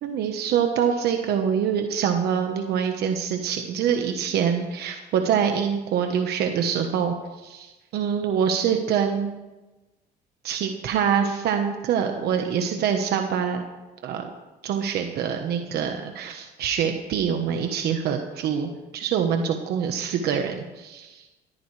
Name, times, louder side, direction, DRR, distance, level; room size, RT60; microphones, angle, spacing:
voice 1, 0.0-7.1 7.4-9.4 10.4-13.6 14.0-14.3 14.6-21.2, right 7 dB, 70° right, 4 dB, 1.3 m, -25 dB
20.5 x 14.0 x 3.4 m, 1.1 s
cardioid pair, 110°, 17 cm